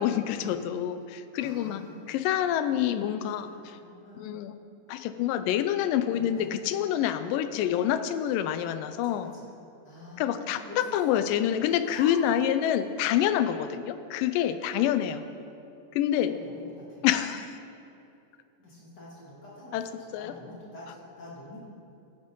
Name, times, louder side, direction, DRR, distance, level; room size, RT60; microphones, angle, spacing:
voice 1, 0.0-1.8 2.1-3.5 4.2-4.5 4.9-9.4 10.2-15.2 15.9-16.4 17.0-17.5 19.7-20.3, left 10 dB, 85° left, 11 dB, 2.2 m, -27 dB
voice 2, 1.4-2.4 2.6-4.3 6.1-6.4 9.0-9.5 9.8-10.9 11.1-11.3 11.8-12.1 14.7-14.8 16.1-16.6 16.9-17.0 18.6-21.6, left 1 dB, 35° left, -6 dB, 2.3 m, -48 dB
11.5 x 8.0 x 5.4 m, 2.7 s
omnidirectional pair, 3.9 m